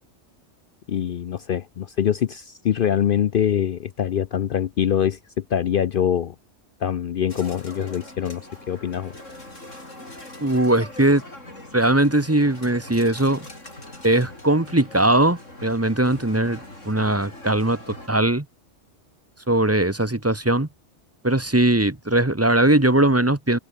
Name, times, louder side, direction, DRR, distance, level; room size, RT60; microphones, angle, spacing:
voice 1, 0.9-6.3 6.8-8.4 8.7-9.1, left 9 dB, 55° left, 0.7 m, -24 dB
sound 1, 7.3-18.1, left 1 dB, 85° left, 8.2 m, -41 dB
voice 2, 10.4-11.2 11.7-13.5 14.0-16.6 16.8-17.8 18.1-18.4 19.5-20.7 21.2-23.6, right 1 dB, 10° right, 1.3 m, -20 dB
omnidirectional pair, 1.3 m